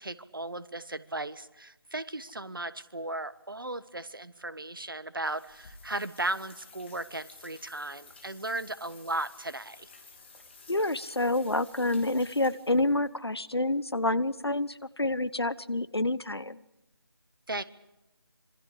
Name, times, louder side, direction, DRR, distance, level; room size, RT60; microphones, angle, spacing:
voice 1, 0.0-9.9 17.5-17.6, right 2 dB, 55° right, 13 dB, 1.4 m, -36 dB
sound 1, 5.2-13.1, left 4 dB, 25° left, 3.3 m, -53 dB
voice 2, 10.7-16.6, left 2 dB, 75° left, 17 dB, 1.1 m, -28 dB
26.5 x 24.0 x 5.0 m, 0.93 s
figure-of-eight pair, 165°, 13 cm